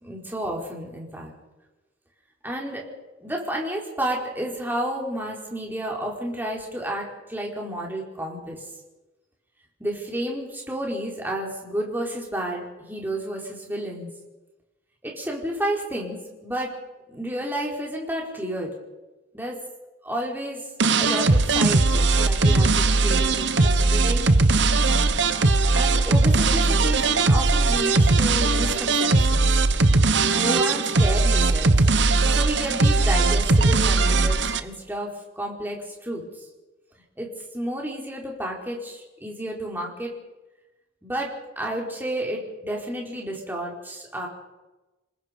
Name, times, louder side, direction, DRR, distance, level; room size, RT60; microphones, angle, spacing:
voice 1, 0.0-1.3 2.4-2.9 3.2-8.7 9.8-14.1 15.0-16.7 17.1-18.7 19.3-19.6 20.0-20.7 21.0-24.5 25.7-29.5 30.3-31.7 32.2-36.4 37.2-37.3 37.5-40.1 41.0-41.3 41.6-44.3, right 1 dB, 10° right, -1 dB, 4.7 m, -31 dB
sound 1, 20.8-34.6, right 3 dB, 60° right, 1.1 m, -19 dB
27.5 x 20.0 x 5.4 m, 1.1 s
head